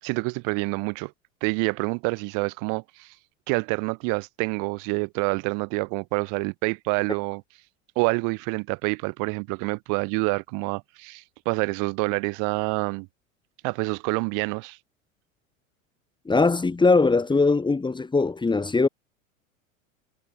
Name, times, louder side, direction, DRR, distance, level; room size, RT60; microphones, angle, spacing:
voice 1, 0.0-1.1 1.4-3.1 3.5-7.4 8.0-13.1 13.6-14.8, right 34 dB, 50° right, 7.7 m, -27 dB
voice 2, 16.3-18.9, left 3 dB, 10° left, 3.1 m, -21 dB
figure-of-eight pair, 85°, 40 cm